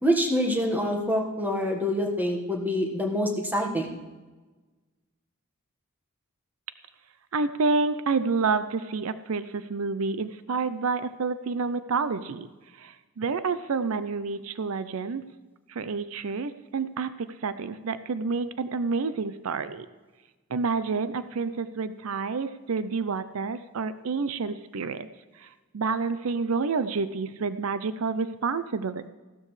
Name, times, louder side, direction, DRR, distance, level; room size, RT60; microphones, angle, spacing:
voice 1, 0.0-4.0, equal, 10° right, 1 dB, 1.5 m, -26 dB
voice 2, 7.3-12.5 12.8-15.3 15.7-19.9 20.5-25.1 25.4-29.1, right 4 dB, 80° right, 13 dB, 0.5 m, -29 dB
15.0 x 12.5 x 3.3 m, 1.3 s
head